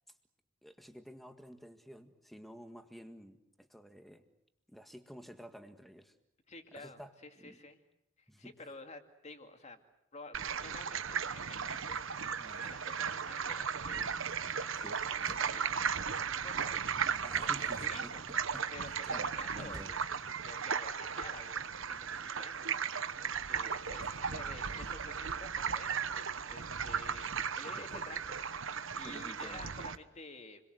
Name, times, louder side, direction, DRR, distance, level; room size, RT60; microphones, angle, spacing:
voice 1, 0.6-4.2 4.7-6.2 6.7-7.6 8.3-8.5 12.4-12.7 14.7-15.0 17.2-18.1 18.5-18.6 19.1-19.9 27.8-28.2 29.0-29.6, equal, ahead, 7 dB, 1.7 m, -51 dB
voice 2, 6.5-7.8 8.2-9.8 10.1-14.9 15.4-16.9 17.6-18.2 18.7-20.0 20.3-28.2 28.6-30.6, left 3 dB, 30° left, 6 dB, 2.4 m, -51 dB
sound 1, 10.3-30.0, right 6 dB, 60° right, 1.1 m, -36 dB
Door, 15.1-15.7 16.8-18.5 19.7-20.2, right 1 dB, 15° right, 2.2 m, -53 dB
29.0 x 22.5 x 7.8 m, 0.86 s
head